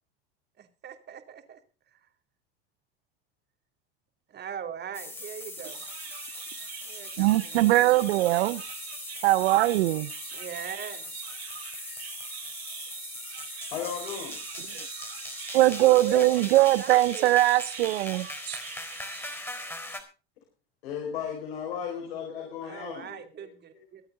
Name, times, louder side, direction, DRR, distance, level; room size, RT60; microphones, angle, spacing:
voice 1, 0.6-1.6 4.3-5.8 6.8-7.9 10.3-11.1 16.0-17.3 22.6-24.0, right 8 dB, 35° right, 2.6 m, -40 dB
sound 1, 4.9-20.0, left 2 dB, 5° left, 4.0 m, -40 dB
voice 2, 5.7-13.7 14.3-19.4, right 17 dB, 80° right, 0.6 m, -25 dB
voice 3, 13.7-14.4 15.8-16.6 20.8-23.8, left 8 dB, 80° left, 5.3 m, -36 dB
24.0 x 8.6 x 3.8 m
supercardioid pair, 105°, 30 cm